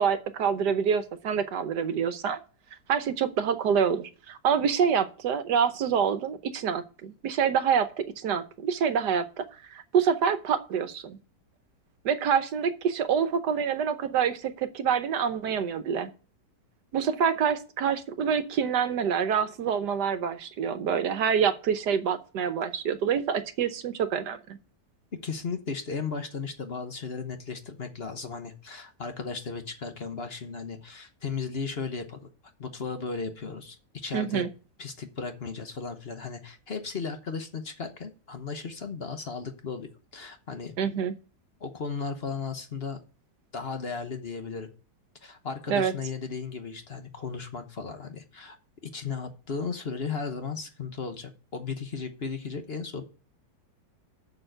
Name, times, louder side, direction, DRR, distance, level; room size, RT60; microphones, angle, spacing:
voice 1, 0.0-2.4 2.9-9.4 9.7-11.2 12.0-16.1 16.9-24.6 34.1-34.5 40.8-41.1 45.7-45.9, right 7 dB, 70° right, 11 dB, 1.4 m, -26 dB
voice 2, 25.1-32.3 32.6-34.5 34.8-40.7 41.6-43.0 43.5-44.7 45.2-48.6 48.8-53.0, left 5 dB, 40° left, 7 dB, 1.0 m, -35 dB
6.7 x 6.6 x 7.7 m, 0.36 s
omnidirectional pair, 1.9 m